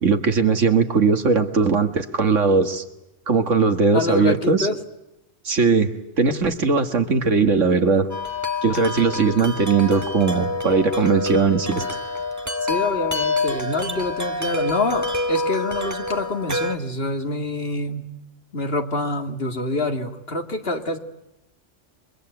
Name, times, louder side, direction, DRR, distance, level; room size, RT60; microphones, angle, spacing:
voice 1, 0.0-2.8 3.3-4.7 5.5-5.9 6.2-8.1 8.6-11.8, right 4 dB, 80° right, 7 dB, 2.1 m, -19 dB
voice 2, 3.9-4.8 12.7-18.1 18.5-21.0, left 2 dB, 50° left, 5 dB, 2.4 m, -26 dB
Wind chime, 8.1-16.7, left 2 dB, 15° right, 1.6 m, -27 dB
29.5 x 24.5 x 8.0 m, 0.95 s
omnidirectional pair, 1.3 m